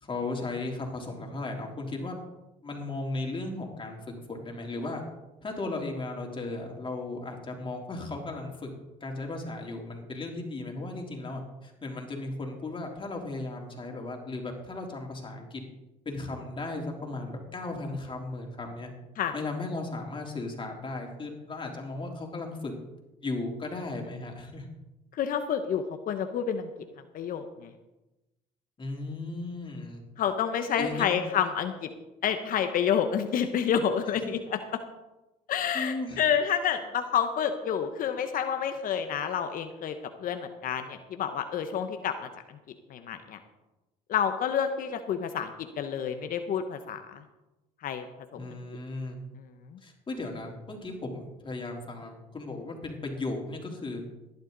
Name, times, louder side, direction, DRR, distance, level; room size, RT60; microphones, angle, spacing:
voice 1, 0.0-2.2 2.6-4.0 4.3-5.0 5.4-8.7 9.0-15.6 16.1-18.9 19.3-22.7 23.2-24.7 28.8-30.0 30.8-31.2 34.2-34.3 35.7-36.2 48.4-49.2 49.8-54.0, left 2 dB, 30° left, 1 dB, 3.6 m, -36 dB
voice 2, 25.1-26.7 27.1-27.7 30.2-31.9 32.2-34.4 35.5-39.9 40.2-42.1 42.5-42.6 42.9-43.4 44.1-45.5 45.8-47.2 47.8-48.0, left 8 dB, 60° left, 7 dB, 1.1 m, -29 dB
16.5 x 11.0 x 4.1 m, 1.0 s
supercardioid pair, 75°, 16 cm